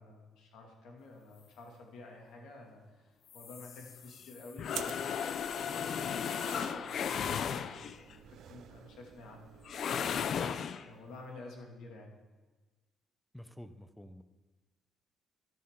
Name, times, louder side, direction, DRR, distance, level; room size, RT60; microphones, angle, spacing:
voice 1, 0.0-3.1 3.3-10.0 10.8-12.2, left 2 dB, 90° left, 1 dB, 2.3 m, -51 dB
sound 1, 3.3-8.1 9.7-10.9, left 7 dB, 55° left, 0.5 m, -35 dB
sound 2, 4.7-10.4, right 10 dB, 65° right, 0.4 m, -50 dB
voice 2, 13.3-14.2, left 1 dB, 5° left, 10 dB, 0.6 m, -49 dB
13.0 x 12.0 x 3.8 m, 1.3 s
cardioid pair, 140°, 0 cm